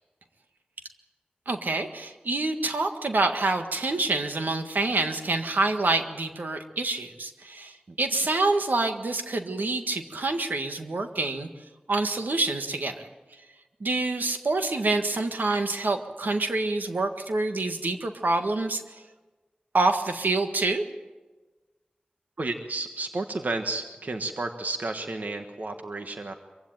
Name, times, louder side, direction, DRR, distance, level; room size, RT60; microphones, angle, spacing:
voice 1, 1.5-11.5 11.9-13.0 13.8-18.8 19.7-20.9, right 2 dB, 80° right, 6 dB, 1.7 m, -27 dB
voice 2, 22.4-26.3, right 2 dB, 60° right, 6 dB, 1.4 m, -32 dB
24.5 x 16.0 x 8.9 m, 1.3 s
wide cardioid pair, 75°, 3 cm